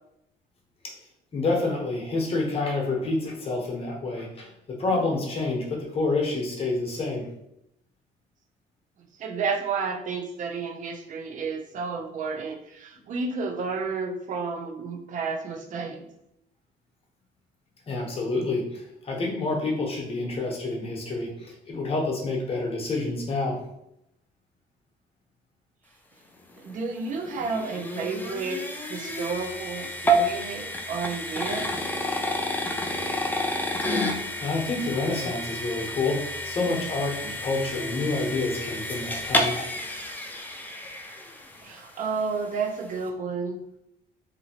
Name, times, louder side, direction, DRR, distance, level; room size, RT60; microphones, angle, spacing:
voice 1, 1.3-7.3 17.9-23.6 34.4-39.7, left 3 dB, 35° left, -1 dB, 0.8 m, -28 dB
voice 2, 9.2-16.1 26.6-28.6 28.9-31.7 41.6-43.6, right 4 dB, 50° right, 4 dB, 0.5 m, -31 dB
sound 1, 26.6-41.8, equal, 10° left, 0.3 m, -30 dB
2.8 x 2.5 x 2.8 m, 0.80 s
cardioid pair, 110°, 17 cm